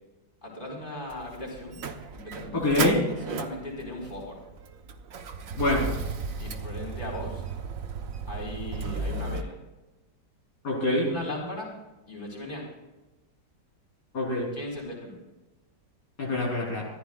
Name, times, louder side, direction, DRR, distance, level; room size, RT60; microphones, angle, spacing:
voice 1, 0.4-1.8 2.1-2.9 3.3-4.4 6.4-7.4 8.3-9.6 11.0-11.7 12.1-12.6 14.5-15.2, left 1 dB, 25° left, -3 dB, 4.7 m, -37 dB
Motor vehicle (road), 1.1-9.4, right 4 dB, 55° right, 1.3 m, -35 dB
voice 2, 2.5-3.0 5.6-5.9 10.6-11.1 14.1-14.5 16.2-16.9, left 2 dB, 65° left, -4 dB, 4.1 m, -25 dB
24.0 x 15.0 x 2.4 m, 1.1 s
omnidirectional pair, 1.9 m